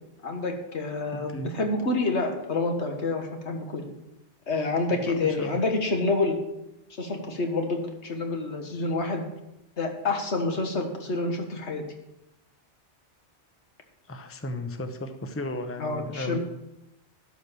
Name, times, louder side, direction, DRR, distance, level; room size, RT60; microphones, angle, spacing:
voice 1, 0.2-3.8 4.5-6.4 7.0-9.2 9.8-11.8 15.8-16.4, left 3 dB, 90° left, 4 dB, 1.7 m, -28 dB
voice 2, 1.1-1.5 4.9-5.6 14.1-16.4, left 1 dB, 15° left, 7 dB, 0.7 m, -35 dB
12.0 x 5.4 x 6.8 m, 0.89 s
omnidirectional pair, 1.1 m